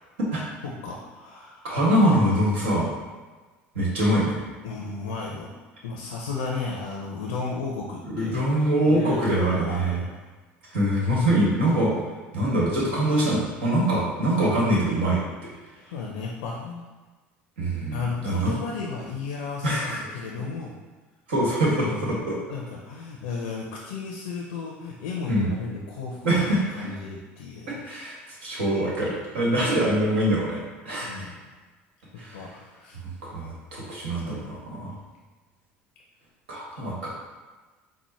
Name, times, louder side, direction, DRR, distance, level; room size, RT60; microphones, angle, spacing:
voice 1, 0.6-1.6 4.6-5.5 5.8-8.4 8.8-10.1 15.9-16.9 17.9-20.7 21.6-22.1 22.5-27.7 31.0-31.3 32.1-33.0, left 4 dB, 80° left, -2 dB, 0.5 m, -34 dB
voice 2, 1.6-2.9 3.7-4.4 8.1-10.0 10.7-11.9 12.3-15.2 17.6-18.5 19.6-20.0 21.3-22.4 25.3-25.5 26.2-26.9 27.8-31.3 32.2-32.5 33.2-35.0 36.5-37.1, right 1 dB, 80° right, -5 dB, 1.4 m, -24 dB
4.3 x 2.1 x 4.2 m, 1.3 s
hypercardioid pair, 75°, 6 cm